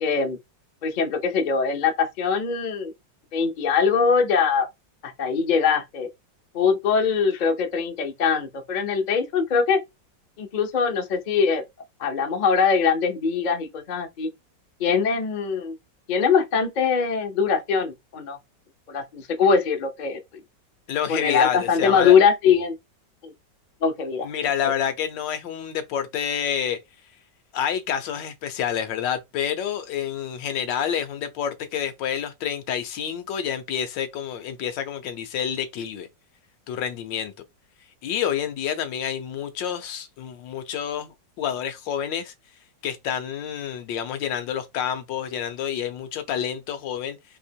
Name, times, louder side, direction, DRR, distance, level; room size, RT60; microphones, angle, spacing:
voice 1, 0.0-0.4 0.8-2.9 3.3-4.7 5.0-6.1 6.5-9.8 10.4-11.6 12.0-14.3 14.8-15.7 16.1-18.4 18.9-20.2 21.1-22.8 23.2-23.3 23.8-24.3 24.6-24.7, left 6 dB, 60° left, 0.4 m, -22 dB
voice 2, 20.9-22.2 24.2-26.8 27.5-36.1 36.7-37.3 38.0-42.3 42.8-47.2, left 9 dB, 80° left, 1.4 m, -28 dB
3.4 x 2.8 x 4.4 m
omnidirectional pair, 2.0 m